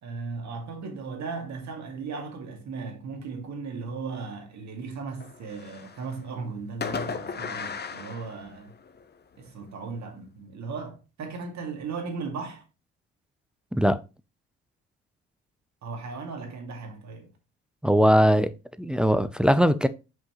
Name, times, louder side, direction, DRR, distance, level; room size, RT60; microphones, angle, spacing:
voice 1, 0.0-8.8 9.4-12.6 15.8-17.3, right 4 dB, 65° right, 2.4 m, -36 dB
Fireworks, 5.2-6.2 6.8-9.0, left 5 dB, 35° left, 0.8 m, -36 dB
voice 2, 17.8-18.5 18.8-19.9, equal, 5° right, 0.5 m, -20 dB
6.0 x 5.4 x 3.0 m
cardioid pair, 90°, 30 cm